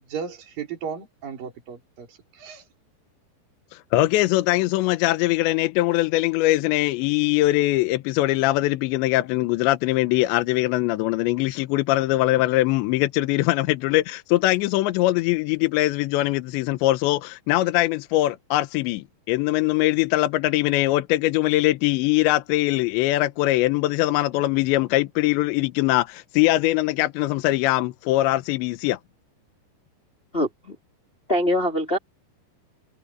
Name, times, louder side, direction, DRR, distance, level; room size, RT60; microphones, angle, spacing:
voice 1, 0.1-2.6, right 7 dB, 50° right, 5.8 m, -35 dB
voice 2, 3.7-29.0, left 17 dB, 80° left, 2.9 m, -22 dB
voice 3, 30.3-30.7 31.3-32.0, equal, 10° left, 4.3 m, -23 dB
omnidirectional pair, 5.5 m